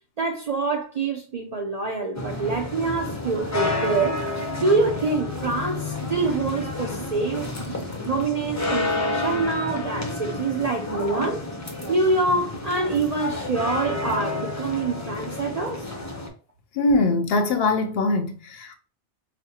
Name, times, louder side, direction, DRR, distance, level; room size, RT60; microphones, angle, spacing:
voice 1, 0.2-4.2 4.6-11.5 11.9-15.8, right 3 dB, 50° right, 0.4 m, -26 dB
sound 1, 2.1-16.3, left 2 dB, 20° left, 0.5 m, -30 dB
voice 2, 16.7-18.8, left 2 dB, 65° left, 0.7 m, -22 dB
5.0 x 2.0 x 2.8 m
omnidirectional pair, 1.2 m